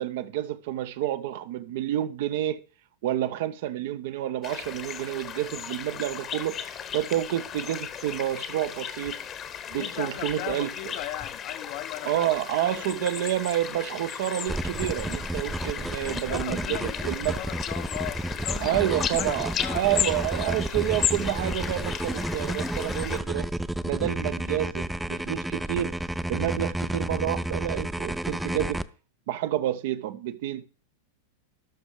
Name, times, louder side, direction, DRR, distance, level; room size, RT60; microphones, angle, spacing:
voice 1, 0.0-2.6 3.0-6.6 6.9-9.2 9.7-10.7 12.1-17.4 18.6-23.5 23.8-25.9 26.3-28.8 29.3-30.6, right 12 dB, 50° right, 0.6 m, -29 dB
sound 1, 4.4-23.2, left 8 dB, 30° left, 0.9 m, -35 dB
voice 2, 9.7-13.1 16.3-18.8 19.2-20.5, left 15 dB, 45° left, 0.7 m, -38 dB
sound 2, 14.5-28.8, right 1 dB, 5° right, 0.4 m, -31 dB
17.5 x 6.1 x 3.2 m
figure-of-eight pair, 90°, 0 cm